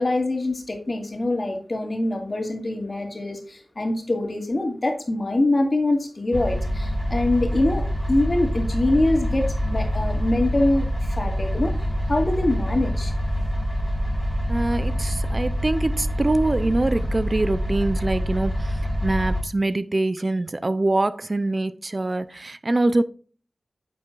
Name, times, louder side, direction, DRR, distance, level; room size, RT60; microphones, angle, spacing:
voice 1, 0.0-11.8 12.1-13.1, left 2 dB, 45° left, 2.3 m, -24 dB
sound 1, 6.3-19.4, equal, ahead, 1.8 m, -26 dB
voice 2, 14.5-23.0, right 2 dB, 40° right, 0.5 m, -24 dB
10.0 x 6.7 x 2.5 m
wide cardioid pair, 60°, 0 cm